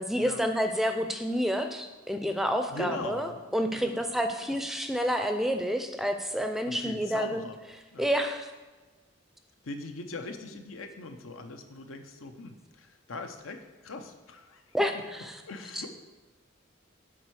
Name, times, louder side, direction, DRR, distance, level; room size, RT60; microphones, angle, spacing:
voice 1, 0.0-7.5 8.0-8.5 14.7-15.4, equal, ahead, 6 dB, 0.4 m, -29 dB
voice 2, 2.7-4.1 4.4-4.6 6.7-7.6 7.9-8.1 9.6-14.8 15.5-15.9, left 3 dB, 90° left, 6 dB, 0.8 m, -41 dB
7.5 x 4.4 x 6.3 m, 1.2 s
head